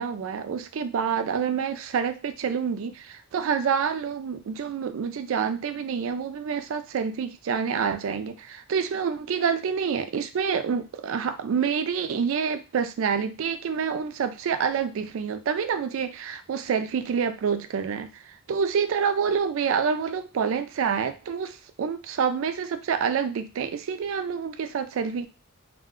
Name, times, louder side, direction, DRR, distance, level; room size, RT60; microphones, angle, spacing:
voice 1, 0.0-25.3, right 6 dB, 70° right, 10 dB, 0.3 m, -27 dB
2.4 x 2.2 x 3.6 m, 0.31 s
head